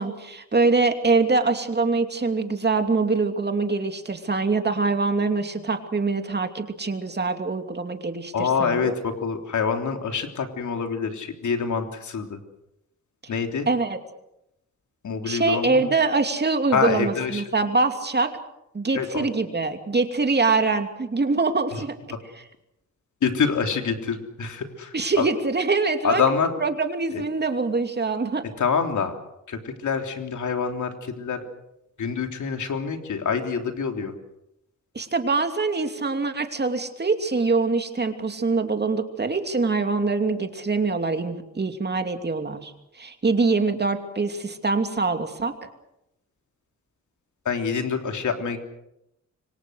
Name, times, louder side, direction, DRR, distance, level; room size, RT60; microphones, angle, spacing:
voice 1, 0.0-8.9 13.7-14.0 15.2-18.3 18.7-21.9 22.3-22.4 24.9-26.2 26.6-28.4 34.9-45.5, right 3 dB, 35° right, 6 dB, 2.8 m, -24 dB
voice 2, 8.3-12.4 13.3-13.7 15.0-15.9 16.7-17.4 18.9-19.3 23.2-25.2 26.0-26.5 27.1-27.2 28.6-29.1 29.5-31.4 32.0-34.1 47.4-48.6, left 6 dB, 80° left, 5 dB, 3.4 m, -26 dB
27.0 x 24.5 x 6.4 m, 0.84 s
wide cardioid pair, 110°, 30 cm